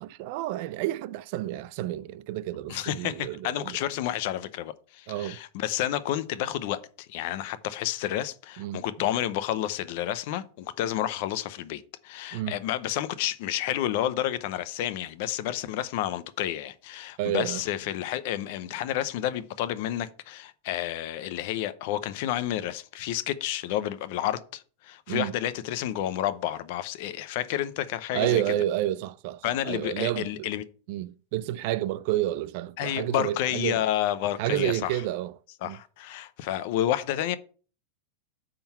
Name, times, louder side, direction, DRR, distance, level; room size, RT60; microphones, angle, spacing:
voice 1, 0.0-3.8 5.1-5.4 8.6-8.8 12.3-12.6 17.2-17.6 25.1-25.3 28.1-30.5 30.9-33.8 34.4-35.3 35.6-35.8, right 14 dB, 45° right, 0.3 m, -30 dB
voice 2, 2.7-28.5 29.4-30.6 32.8-35.0 35.6-37.4, left 12 dB, 45° left, 0.6 m, -30 dB
8.9 x 3.8 x 5.6 m
supercardioid pair, 175°, 0 cm